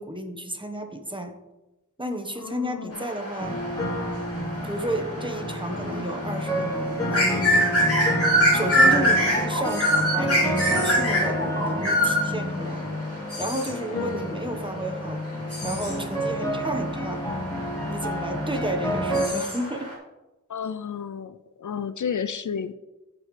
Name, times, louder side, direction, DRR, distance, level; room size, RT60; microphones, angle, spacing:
voice 1, 0.0-1.3 2.0-3.6 4.6-7.5 8.5-12.8 13.4-15.2 15.6-17.2 17.9-19.9, right 1 dB, 15° right, 4 dB, 1.2 m, -32 dB
voice 2, 2.4-3.0 13.9-14.2 20.5-22.8, left 7 dB, 70° left, 13 dB, 0.5 m, -32 dB
sound 1, 2.9-19.9, equal, 50° left, 2.6 m, -26 dB
sound 2, 3.4-19.3, equal, 10° left, 2.1 m, -29 dB
15.0 x 5.3 x 3.3 m, 1.0 s
wide cardioid pair, 60°, 31 cm